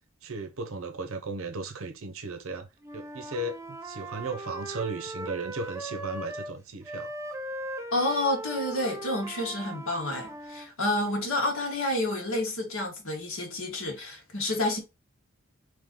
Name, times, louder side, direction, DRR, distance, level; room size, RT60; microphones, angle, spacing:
voice 1, 0.2-2.7 2.9-7.1, right 2 dB, 70° right, 0.8 m, -36 dB
Wind instrument woodwind instrument, 2.8-6.5 6.8-10.7, right 1 dB, 15° right, 0.5 m, -39 dB
voice 2, 7.9-14.8, left 1 dB, 75° left, 1.6 m, -29 dB
3.7 x 3.2 x 3.7 m
head